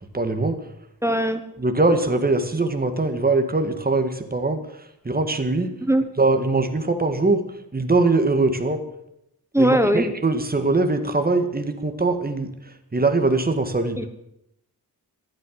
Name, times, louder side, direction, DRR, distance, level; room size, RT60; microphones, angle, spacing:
voice 1, 0.1-0.6 1.6-5.7 6.2-7.4 7.7-8.8 9.6-14.1, right 3 dB, 25° right, 7 dB, 2.0 m, -22 dB
voice 2, 1.0-1.4 5.8-6.0 9.5-10.1 14.0-14.1, right 1 dB, 5° right, 9 dB, 1.2 m, -19 dB
14.5 x 12.5 x 7.7 m, 0.80 s
wide cardioid pair, 115°, 38 cm